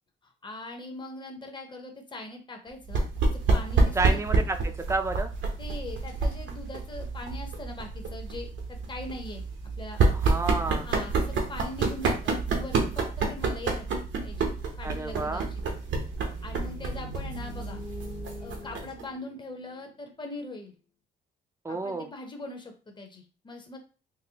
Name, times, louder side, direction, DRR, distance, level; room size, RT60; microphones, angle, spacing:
voice 1, 0.2-4.2 5.6-9.4 9.8-10.0 10.8-15.8 16.4-17.8 18.4-20.7 21.7-23.8, left 2 dB, 25° left, 3 dB, 0.8 m, -41 dB
sound 1, 2.9-19.0, right 3 dB, 70° right, 0.8 m, -28 dB
voice 2, 3.9-5.3 10.1-10.9 14.8-15.5 21.6-22.1, right 3 dB, 15° right, 6 dB, 0.4 m, -30 dB
sound 2, 16.2-20.4, left 5 dB, 75° left, 1.1 m, -46 dB
4.0 x 2.1 x 2.8 m, 0.36 s
cardioid pair, 90°, 20 cm